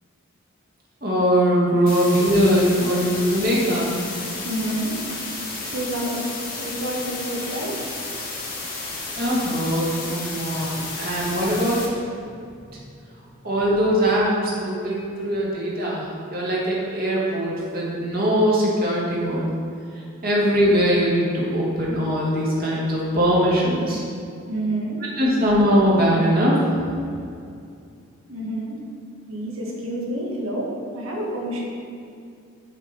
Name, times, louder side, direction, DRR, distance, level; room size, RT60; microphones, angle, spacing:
voice 1, 1.0-4.0 9.2-11.8 13.4-16.1 16.3-19.5 19.9-24.0 25.2-26.6, equal, 45° right, -5 dB, 1.4 m, -21 dB
sound 1, 1.9-11.9, left 3 dB, 40° left, 1.2 m, -32 dB
voice 2, 4.2-9.3 9.8-9.9 10.4-11.1 24.5-25.0 28.3-28.8 29.3-31.6, right 1 dB, 75° right, -2 dB, 1.3 m, -30 dB
5.9 x 5.4 x 4.3 m, 2.4 s
head